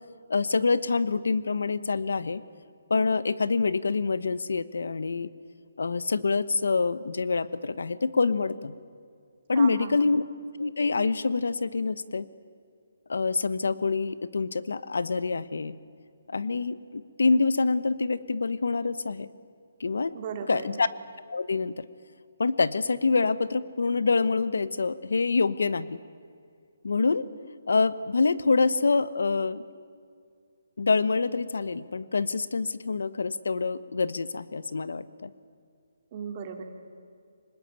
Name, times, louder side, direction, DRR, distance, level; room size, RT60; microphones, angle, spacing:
voice 1, 0.3-2.4 2.9-5.3 5.8-8.7 9.5-10.2 10.6-12.3 13.1-15.7 16.3-19.3 19.8-20.1 20.5-20.9 21.3-21.9 22.4-26.0 26.8-27.3 27.7-29.6 30.8-35.3, left 4 dB, 80° left, 16 dB, 1.2 m, -26 dB
voice 2, 9.5-10.0 20.1-20.7 36.1-36.6, right 7 dB, 35° right, 5 dB, 2.8 m, -36 dB
25.5 x 20.5 x 9.0 m, 2.3 s
hypercardioid pair, 160°, 0 cm